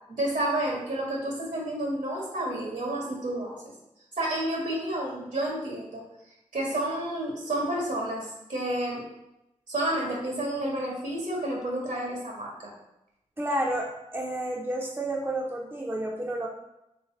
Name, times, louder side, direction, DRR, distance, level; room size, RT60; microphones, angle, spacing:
voice 1, 0.1-3.5 4.2-6.0 6.5-9.0 9.7-12.7, right 1 dB, 75° right, -3 dB, 1.4 m, -30 dB
voice 2, 13.4-16.5, right 1 dB, 15° right, -2 dB, 0.7 m, -30 dB
3.3 x 3.3 x 3.9 m, 0.89 s
cardioid pair, 40°, 14 cm